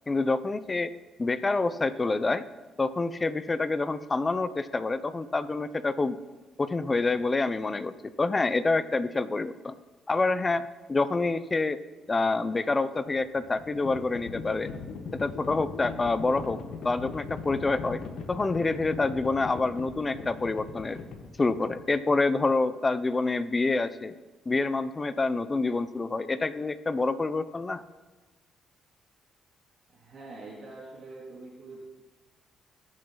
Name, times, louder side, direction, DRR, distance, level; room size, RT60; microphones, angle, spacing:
voice 1, 0.1-0.9 1.2-2.4 2.8-6.2 6.6-9.7 10.1-10.6 10.9-11.8 12.1-14.7 15.2-16.6 16.8-18.0 18.3-21.0 21.4-24.2 24.5-27.8, left 3 dB, 25° left, 13 dB, 0.7 m, -27 dB
Livestock farm animals working animals, 12.9-22.0, left 5 dB, 75° left, 1.6 m, -40 dB
voice 2, 29.9-31.8, right 2 dB, 55° right, -5 dB, 3.0 m, -44 dB
21.5 x 7.5 x 4.0 m, 1.2 s
cardioid pair, 90°, 0 cm